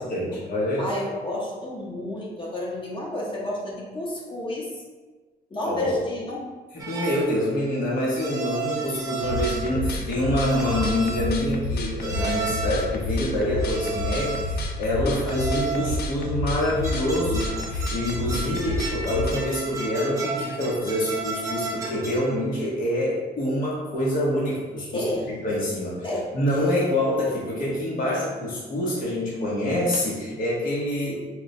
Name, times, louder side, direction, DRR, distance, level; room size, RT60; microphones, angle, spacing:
voice 1, 0.0-0.9 5.6-6.0 6.7-26.1 26.3-31.2, left 1 dB, 60° left, -6 dB, 0.9 m, -26 dB
voice 2, 0.8-4.7 5.5-6.5 15.0-15.4 24.9-25.3 26.0-26.3, left 1 dB, 30° left, -4 dB, 0.9 m, -31 dB
sound 1, 6.8-7.3 8.2-9.8 10.3-11.3 12.0-12.9 13.6-14.6 15.3-16.0 16.6-22.3, right 4 dB, 20° right, 0.8 m, -33 dB
sound 2, 9.2-19.3, left 2 dB, 75° left, 0.4 m, -30 dB
4.5 x 2.1 x 2.7 m, 1.3 s
cardioid pair, 120°, 16 cm